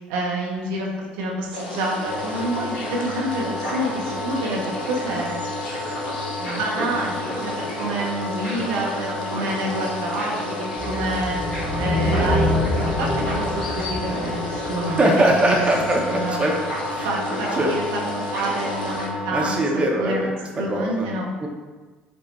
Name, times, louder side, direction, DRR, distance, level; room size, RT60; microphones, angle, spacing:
voice 1, 0.0-5.4 6.4-11.4 11.8-15.1 15.3-15.7 16.1-16.4 17.0-20.2 20.6-21.3, right 1 dB, 70° right, -2 dB, 0.6 m, -28 dB
sound 1, 1.5-19.1, left 2 dB, 80° left, 0.5 m, -34 dB
sound 2, 2.0-19.6, left 1 dB, 50° left, 1.2 m, -31 dB
sound 3, 10.8-15.2, left 1 dB, 20° left, 0.9 m, -25 dB
voice 2, 14.9-16.5 16.9-17.1 17.6-17.7 19.3-21.1 21.4-21.5, right 1 dB, 25° right, 0 dB, 0.7 m, -22 dB
5.1 x 2.1 x 3.0 m, 1.3 s
figure-of-eight pair, 60°, 5 cm